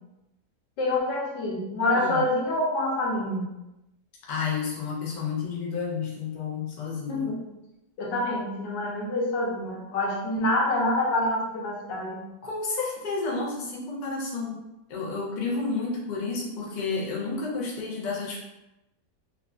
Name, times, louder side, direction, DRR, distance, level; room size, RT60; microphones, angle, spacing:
voice 1, 0.8-3.5 7.1-7.4 8.0-12.2, left 1 dB, 90° left, -3 dB, 1.4 m, -26 dB
voice 2, 4.3-7.3 12.4-14.6 14.9-18.4, left 4 dB, 70° left, -4 dB, 0.4 m, -31 dB
3.5 x 2.4 x 2.3 m, 0.93 s
omnidirectional pair, 1.9 m